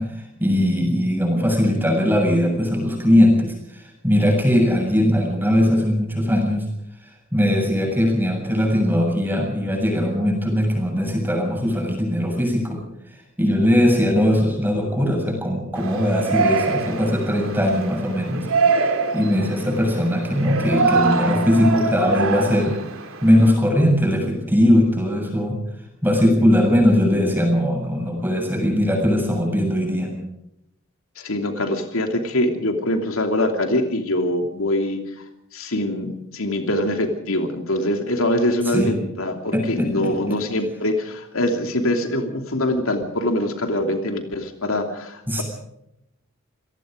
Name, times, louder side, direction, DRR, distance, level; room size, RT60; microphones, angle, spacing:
voice 1, 0.0-6.7 7.3-12.8 13.1-22.8 23.2-25.6 26.0-30.1 38.7-38.9 39.5-40.1 45.3-45.4, equal, 10° right, 2 dB, 7.3 m, -20 dB
Yell, 15.8-23.5, right 4 dB, 85° right, 3.1 m, -24 dB
voice 2, 31.2-35.0 35.5-45.4, left 1 dB, 80° left, 5 dB, 2.9 m, -23 dB
28.0 x 18.5 x 5.1 m, 0.83 s
head